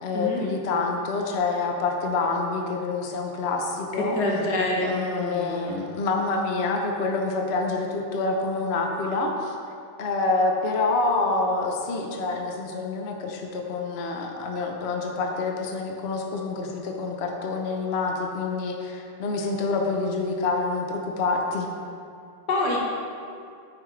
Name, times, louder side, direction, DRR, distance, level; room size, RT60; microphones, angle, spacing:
voice 1, 0.0-4.2 4.8-9.5 10.0-21.7, left 3 dB, 80° left, 1 dB, 0.5 m, -27 dB
voice 2, 4.0-5.9 22.5-22.8, left 2 dB, 50° left, -3 dB, 1.8 m, -26 dB
9.6 x 8.7 x 3.2 m, 2.4 s
omnidirectional pair, 2.4 m